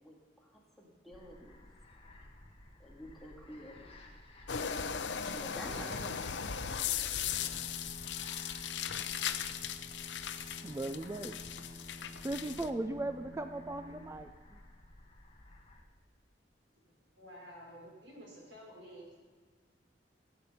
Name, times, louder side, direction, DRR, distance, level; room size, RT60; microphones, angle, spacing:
voice 1, 0.0-1.6 2.8-3.8 5.3-6.2, equal, ahead, -2 dB, 1.8 m, -49 dB
sound 1, 1.1-15.8, left 1 dB, 30° left, 1.4 m, -56 dB
sound 2, 4.5-12.7, left 8 dB, 75° left, 0.7 m, -38 dB
Bowed string instrument, 7.1-15.1, equal, 55° right, 2.1 m, -52 dB
voice 2, 10.6-11.6 12.1-14.6, right 2 dB, 15° right, 8 dB, 0.4 m, -38 dB
voice 3, 17.2-19.2, equal, 90° right, -2 dB, 4.7 m, -51 dB
16.0 x 8.6 x 5.6 m, 1.4 s
head